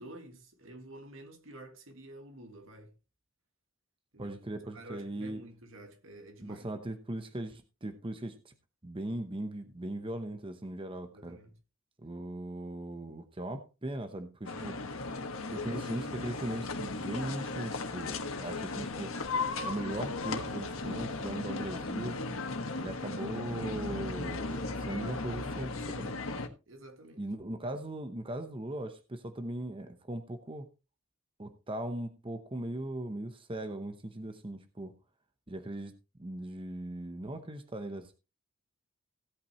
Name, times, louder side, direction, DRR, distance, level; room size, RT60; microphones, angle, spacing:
voice 1, 0.0-2.9 4.1-6.7 11.1-11.6 18.4-18.7 26.7-27.3, right 1 dB, 70° right, 2.1 m, -50 dB
voice 2, 4.2-5.4 6.4-8.5 8.8-11.4 12.0-14.8 15.5-19.1 19.6-22.2 22.8-26.1 27.2-30.7 31.4-34.9 35.5-35.9 36.2-38.1, right 1 dB, 25° right, 0.9 m, -39 dB
sound 1, 14.4-26.5, left 3 dB, 85° left, 1.5 m, -36 dB
16.5 x 8.7 x 3.1 m
head